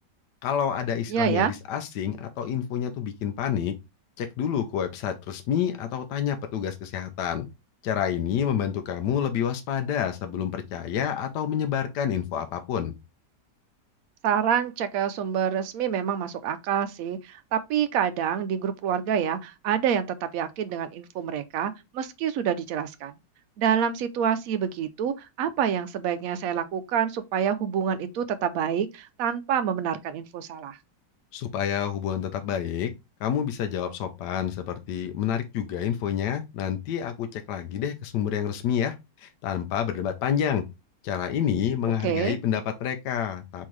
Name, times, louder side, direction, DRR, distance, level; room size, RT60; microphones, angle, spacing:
voice 1, 0.4-3.7 4.2-7.5 7.8-12.9 31.3-32.9 33.2-40.6 41.0-43.7, left 9 dB, 80° left, 1.3 m, -28 dB
voice 2, 1.1-1.5 14.2-23.2 23.6-30.8 42.0-42.4, right 8 dB, 65° right, 0.9 m, -27 dB
4.3 x 3.7 x 3.1 m
omnidirectional pair, 1.8 m